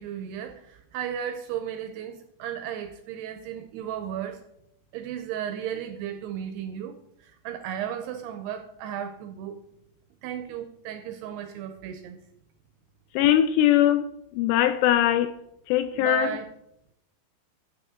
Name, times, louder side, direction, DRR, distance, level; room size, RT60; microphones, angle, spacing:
voice 1, 0.0-4.4 4.9-9.6 10.2-12.2 15.9-16.5, right 9 dB, 85° right, 2.4 m, -35 dB
voice 2, 13.2-14.1 14.4-15.3 15.7-16.3, left 12 dB, 85° left, 2.5 m, -21 dB
12.0 x 7.8 x 3.7 m
omnidirectional pair, 5.3 m